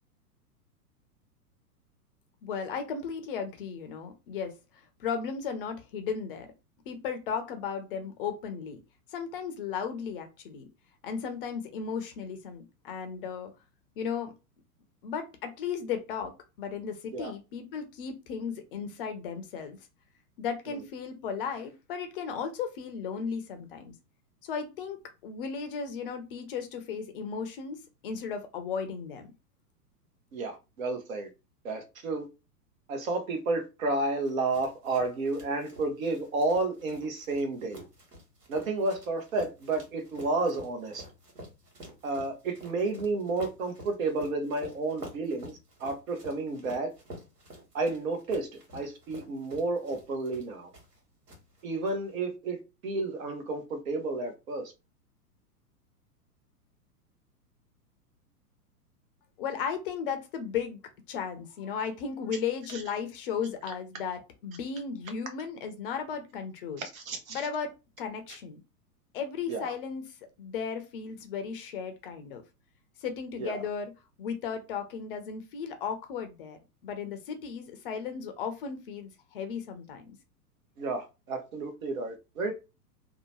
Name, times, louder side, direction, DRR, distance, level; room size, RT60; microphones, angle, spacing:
voice 1, 2.4-6.5 6.9-8.8 9.1-10.7 11.0-13.5 14.0-14.3 15.0-19.8 20.4-23.9 24.4-29.3 59.4-60.8 61.1-66.8 67.3-67.7 68.0-68.6 69.1-72.4 73.0-73.9 74.2-76.6 76.8-80.2, left 6 dB, 35° left, 0.5 m, -35 dB
voice 2, 30.3-31.3 31.6-32.3 32.9-37.8 38.5-41.0 42.0-45.5 45.8-46.9 47.7-50.7 51.6-54.7 66.9-67.4 69.5-69.7 73.4-73.6 80.8-82.5, right 3 dB, 55° right, 1.0 m, -31 dB
sound 1, 34.2-51.0 51.3-51.9, right 1 dB, 75° right, 1.5 m, -49 dB
2.8 x 2.1 x 2.9 m
figure-of-eight pair, 105°, 47 cm